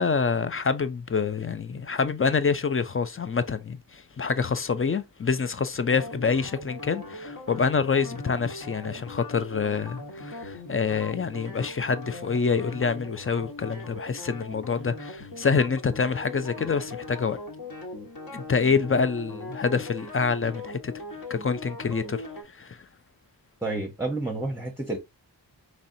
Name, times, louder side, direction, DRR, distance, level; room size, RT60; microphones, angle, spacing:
voice 1, 0.0-17.4 18.3-20.9 21.3-22.8, left 5 dB, 30° left, 0.4 m, -26 dB
sound 1, 5.9-22.4, left 2 dB, 55° left, 1.3 m, -40 dB
voice 2, 23.6-25.0, right 2 dB, 5° right, 0.8 m, -30 dB
4.1 x 3.2 x 2.6 m
wide cardioid pair, 95°, 43 cm